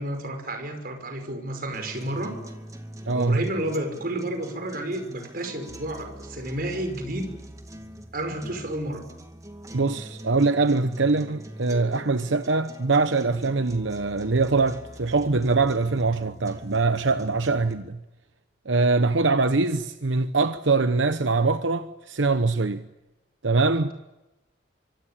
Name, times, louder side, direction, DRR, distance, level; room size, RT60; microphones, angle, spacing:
voice 1, 0.0-2.4 3.1-7.3 8.1-9.0, right 1 dB, 50° right, 5.7 m, -31 dB
sound 1, 1.7-17.7, right 1 dB, 15° right, 2.3 m, -43 dB
voice 2, 3.1-3.4 9.7-18.0 18.7-22.8 23.4-23.9, right 3 dB, 80° right, 1.0 m, -23 dB
25.5 x 25.0 x 8.8 m
head